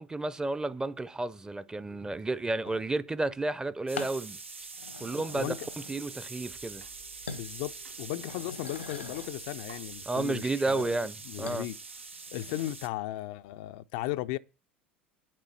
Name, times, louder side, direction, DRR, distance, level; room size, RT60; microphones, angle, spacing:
voice 1, 0.0-4.4 5.0-5.5 5.9-6.8 10.1-11.7, right 2 dB, 10° right, 0.6 m, -32 dB
sound 1, 2.6-2.9 4.0-4.2 4.7-6.2 6.5-6.9 7.3-7.5 7.9-9.4 11.5-11.6 12.1-12.7, left 5 dB, 85° left, 1.1 m, -43 dB
sound 2, 3.9-12.9, right 4 dB, 85° right, 0.8 m, -44 dB
voice 2, 5.1-5.6 7.3-11.8 12.3-14.4, left 15 dB, 55° left, 0.4 m, -36 dB
sound 3, 6.4-11.2, right 11 dB, 70° right, 2.8 m, -61 dB
9.0 x 7.5 x 5.7 m
figure-of-eight pair, 75°, 6 cm